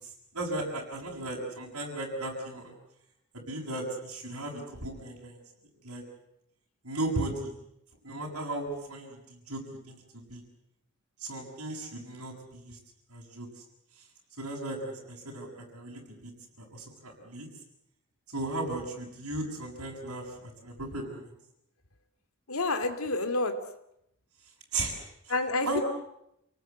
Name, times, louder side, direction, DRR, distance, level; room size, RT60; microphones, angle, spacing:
voice 1, 0.0-2.7 3.3-5.4 5.8-6.0 6.8-7.5 8.0-9.6 9.9-10.4 11.2-12.8 13.1-13.5 14.4-16.3 16.6-17.5 18.3-21.3 24.7-25.3 25.7-25.8, right 2 dB, 80° right, -2 dB, 6.9 m, -36 dB
voice 2, 22.5-23.5 25.3-25.8, left 2 dB, 70° left, 7 dB, 2.5 m, -28 dB
28.5 x 19.0 x 8.2 m, 0.79 s
head